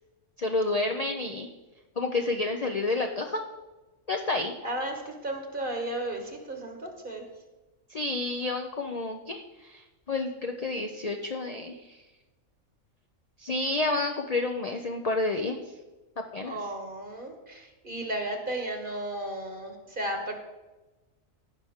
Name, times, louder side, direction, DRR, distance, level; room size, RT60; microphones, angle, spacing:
voice 1, 0.4-1.5 2.0-3.4 4.1-4.5 7.9-12.0 13.4-15.7 16.3-16.6, left 2 dB, 40° left, 4 dB, 0.6 m, -30 dB
voice 2, 4.6-7.2 16.4-20.3, right 1 dB, 40° right, 3 dB, 1.3 m, -34 dB
16.0 x 5.6 x 3.6 m, 1.1 s
omnidirectional pair, 1.4 m